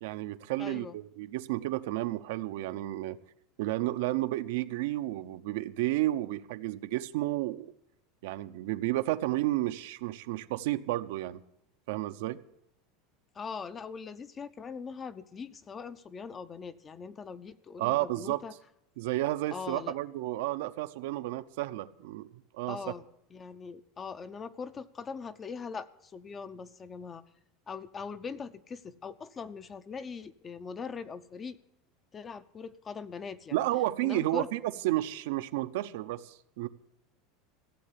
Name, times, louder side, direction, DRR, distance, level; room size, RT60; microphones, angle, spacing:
voice 1, 0.0-3.2 3.6-7.7 8.2-11.4 11.9-12.4 17.8-18.4 19.0-22.8 33.5-36.7, right 16 dB, 75° right, 10 dB, 0.7 m, -32 dB
voice 2, 0.6-1.0 13.3-18.5 19.5-20.0 22.7-23.1 23.3-27.2 27.7-31.6 32.1-33.6 34.0-34.5, left 5 dB, 20° left, 13 dB, 0.5 m, -41 dB
15.5 x 7.8 x 8.3 m, 0.80 s
supercardioid pair, 165°, 0 cm